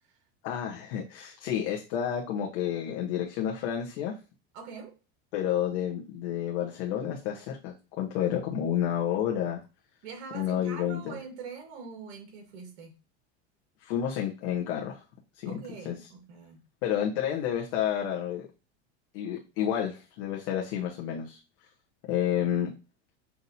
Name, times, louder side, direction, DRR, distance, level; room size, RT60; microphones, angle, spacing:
voice 1, 0.4-4.1 5.3-9.6 10.3-11.2 13.8-15.0 15.3-15.6 15.8-16.0 16.8-18.5 19.1-21.4 22.1-22.7, left 10 dB, 60° left, 0.9 m, -30 dB
voice 2, 4.5-4.9 10.0-13.0 15.4-16.6, right 5 dB, 70° right, 1.6 m, -43 dB
5.8 x 2.7 x 2.7 m
supercardioid pair, 145°, 35 cm